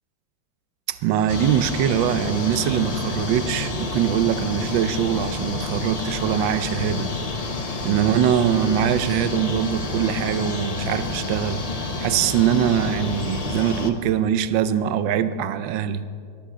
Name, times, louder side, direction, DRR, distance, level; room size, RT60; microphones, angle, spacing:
voice 1, 0.9-7.1 7.8-11.6 12.0-16.0, right 9 dB, 80° right, 13 dB, 1.4 m, -22 dB
sound 1, 1.3-13.9, left 3 dB, 40° left, 0.5 m, -29 dB
Wind instrument woodwind instrument, 8.9-12.6, left 3 dB, 65° left, 4.4 m, -49 dB
22.5 x 15.0 x 3.8 m, 2.3 s
omnidirectional pair, 2.1 m